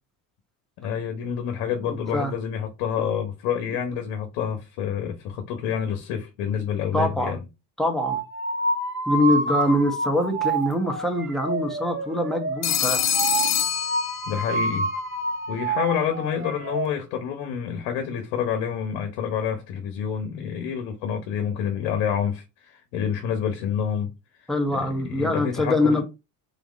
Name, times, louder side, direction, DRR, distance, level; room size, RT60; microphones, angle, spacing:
voice 1, 0.8-7.4 14.3-14.9 15.5-24.1 24.7-26.0, left 8 dB, 75° left, 1.1 m, -28 dB
voice 2, 6.9-7.4 7.8-8.2 9.1-13.0 24.5-26.0, left 1 dB, ahead, 1.5 m, -24 dB
sound 1, 8.0-16.9, right 3 dB, 25° right, 1.6 m, -28 dB
Telephone, 12.6-14.7, left 9 dB, 35° left, 0.7 m, -25 dB
4.2 x 3.5 x 3.2 m
hypercardioid pair, 70°, 46 cm